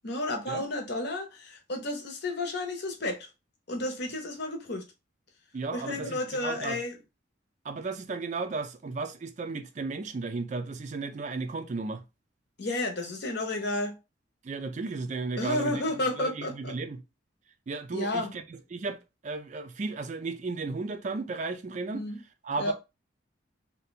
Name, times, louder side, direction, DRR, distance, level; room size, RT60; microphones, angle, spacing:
voice 1, 0.0-3.3 3.7-4.8 5.7-7.0 12.6-14.0 15.4-16.7 17.9-18.3 21.9-22.2 22.6-22.7, left 2 dB, 60° left, 0.8 m, -31 dB
voice 2, 5.5-6.8 7.6-12.0 14.4-15.8 16.2-17.0 17.7-19.0 19.2-22.1 22.4-22.7, right 3 dB, 40° right, 0.4 m, -34 dB
2.7 x 2.2 x 4.0 m
head